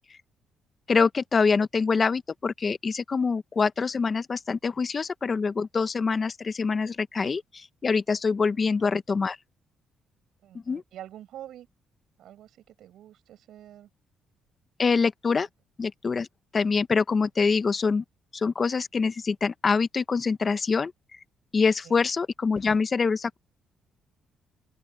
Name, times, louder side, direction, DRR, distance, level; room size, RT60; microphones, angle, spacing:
voice 1, 0.9-9.4 10.7-10.8 14.8-15.5 15.8-16.3 16.5-18.0 18.3-20.9 21.5-23.4, left 5 dB, 35° left, 1.1 m, -25 dB
voice 2, 10.4-11.7 12.2-13.9 21.8-22.0, right 12 dB, 80° right, 7.3 m, -46 dB
open air
cardioid pair, 90°, 0 cm